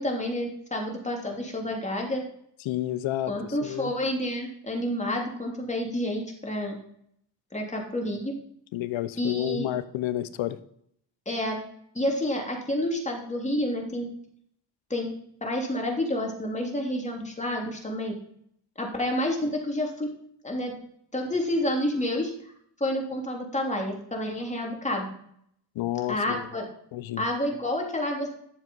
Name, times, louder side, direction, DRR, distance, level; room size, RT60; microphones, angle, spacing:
voice 1, 0.0-2.2 3.3-6.8 7.5-8.3 9.2-9.7 11.3-11.6 11.9-14.1 14.9-15.1 15.4-18.2 18.8-20.1 20.4-20.7 21.1-22.3 22.8-25.2 26.1-26.7 27.2-28.3, left 1 dB, 15° left, 0 dB, 3.1 m, -29 dB
voice 2, 2.6-3.3 3.6-3.9 8.7-10.6 25.7-26.4 26.9-27.2, left 14 dB, 80° left, 14 dB, 0.9 m, -30 dB
11.0 x 7.3 x 5.6 m, 0.69 s
cardioid pair, 90°, 46 cm